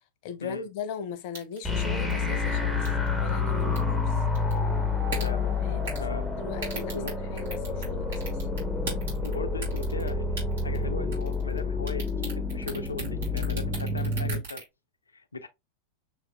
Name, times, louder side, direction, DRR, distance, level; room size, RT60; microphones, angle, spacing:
voice 1, 0.2-2.9 3.2-4.2 5.6-6.9 7.3-8.4, left 7 dB, 45° left, 0.7 m, -39 dB
sound 1, 1.3-1.7 2.1-2.2 2.8-3.1 3.6-3.8 4.3-4.6 5.1-5.3 5.8-6.1 6.6-7.9 8.1-9.3 9.6-10.1 10.4-10.8 11.1-11.6 11.9-14.6, right 4 dB, 60° right, 2.6 m, -36 dB
sound 2, 1.6-14.4, left 3 dB, 5° left, 1.0 m, -29 dB
voice 2, 5.2-5.6 6.0-6.3 6.7-7.2 9.2-14.6 15.1-15.5, left 3 dB, 75° left, 0.6 m, -38 dB
6.2 x 2.9 x 2.2 m
figure-of-eight pair, 90°, 0 cm